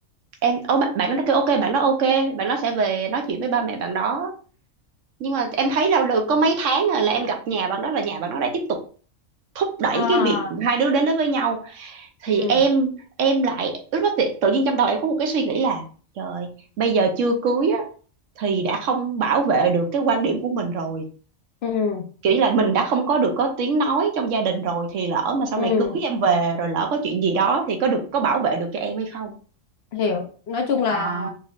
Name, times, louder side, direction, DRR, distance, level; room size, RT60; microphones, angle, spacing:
voice 1, 0.4-4.3 5.2-8.8 9.5-12.9 13.2-15.8 16.2-17.9 18.4-21.1 22.2-29.3 30.9-31.3, right 4 dB, 70° right, 4 dB, 1.0 m, -22 dB
voice 2, 9.9-10.6 12.4-12.6 21.6-22.1 25.6-26.0 29.9-31.3, left 5 dB, 60° left, 3 dB, 0.8 m, -24 dB
4.2 x 3.0 x 2.4 m, 0.40 s
omnidirectional pair, 1.4 m